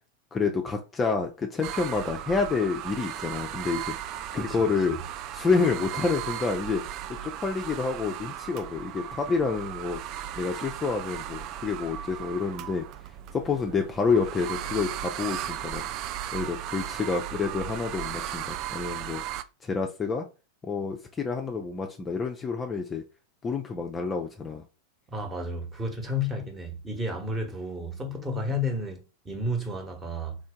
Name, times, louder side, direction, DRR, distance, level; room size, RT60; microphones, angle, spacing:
voice 1, 0.3-6.8 7.1-10.0 10.4-12.9 13.3-15.8 16.3-19.2 19.6-20.3 20.6-23.0 23.4-24.6, left 4 dB, 20° left, 0.5 m, -28 dB
sound 1, 1.6-19.4, right 11 dB, 40° right, 0.3 m, -36 dB
voice 2, 25.1-30.4, left 1 dB, 15° right, 1.1 m, -32 dB
3.6 x 2.6 x 3.6 m
figure-of-eight pair, 90°, 0 cm